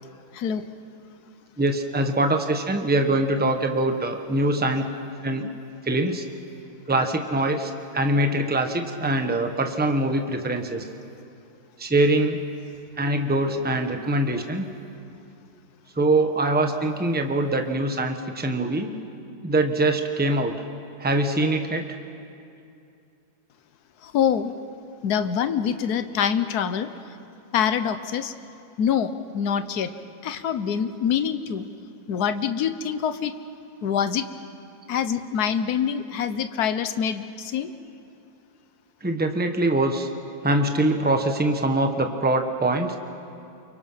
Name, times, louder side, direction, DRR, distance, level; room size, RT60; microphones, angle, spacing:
voice 1, 1.6-4.9 5.2-5.5 5.8-6.2 6.9-10.8 11.8-12.4 13.0-14.7 16.0-18.9 19.4-20.5 21.0-21.8 39.0-40.1 40.4-43.0, right 2 dB, 5° right, 5 dB, 0.9 m, -23 dB
voice 2, 24.0-24.5 25.0-26.9 27.5-28.3 28.8-29.9 30.2-31.7 32.1-33.3 33.8-34.3 34.9-37.7, left 8 dB, 60° left, 11 dB, 1.3 m, -25 dB
29.5 x 24.0 x 5.7 m, 2.6 s
omnidirectional pair, 2.2 m